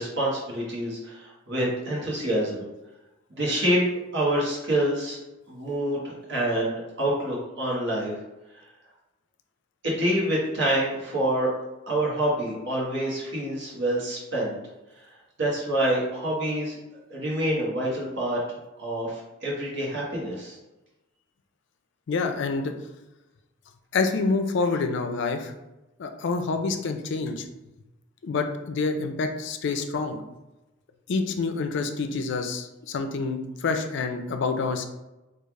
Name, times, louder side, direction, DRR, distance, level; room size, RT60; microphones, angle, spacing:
voice 1, 0.0-2.6 3.3-3.8 4.1-5.2 5.5-8.1 9.8-11.5 11.9-14.6 15.4-16.8 17.1-18.4 18.8-20.6, right 1 dB, 55° right, -5 dB, 1.1 m, -27 dB
voice 2, 22.1-22.7 23.9-25.5 26.0-27.5 28.2-30.2 31.1-34.9, left 4 dB, 60° left, 6 dB, 0.4 m, -27 dB
3.2 x 2.4 x 3.6 m, 1.0 s
head